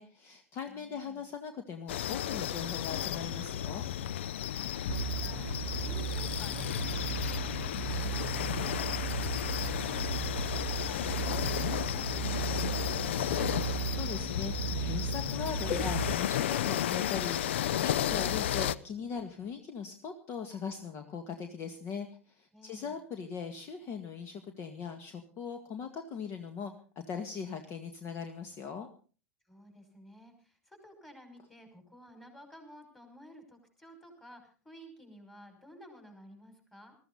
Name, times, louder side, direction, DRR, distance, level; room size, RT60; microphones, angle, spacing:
voice 1, 0.0-3.8 13.5-28.9, left 6 dB, 35° left, 7 dB, 2.0 m, -40 dB
voice 2, 0.7-1.2 4.5-13.5 22.5-23.0 29.5-37.0, equal, 5° left, 6 dB, 5.7 m, -54 dB
sound 1, 1.9-18.8, left 11 dB, 60° left, 0.7 m, -33 dB
sound 2, 4.9-16.1, right 12 dB, 50° right, 0.8 m, -37 dB
21.5 x 14.5 x 4.1 m, 0.38 s
figure-of-eight pair, 90°, 7 cm